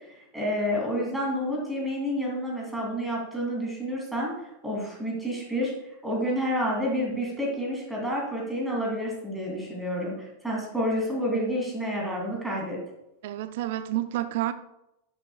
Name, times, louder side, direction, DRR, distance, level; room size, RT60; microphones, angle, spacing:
voice 1, 0.3-4.3 4.6-5.7 6.0-12.8, equal, 5° right, 2.7 m, -29 dB
voice 2, 13.2-14.5, right 14 dB, 50° right, 0.5 m, -29 dB
10.5 x 6.9 x 2.3 m
figure-of-eight pair, 90°, 0 cm